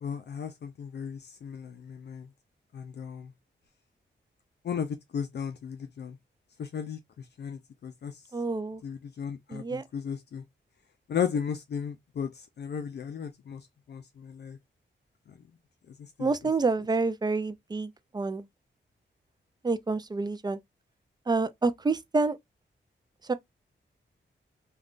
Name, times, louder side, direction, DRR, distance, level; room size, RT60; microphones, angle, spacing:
voice 1, 0.0-2.3 2.7-3.3 4.6-6.2 6.6-8.2 8.8-10.4 11.1-14.6 15.3-15.4 15.9-16.3, left 7 dB, 60° left, 0.4 m, -35 dB
voice 2, 8.3-8.8 9.5-9.8 16.2-18.4 19.6-20.6 21.3-22.4 23.3-23.4, right 3 dB, 20° right, 0.3 m, -28 dB
3.5 x 2.3 x 2.4 m
wide cardioid pair, 125°, 20 cm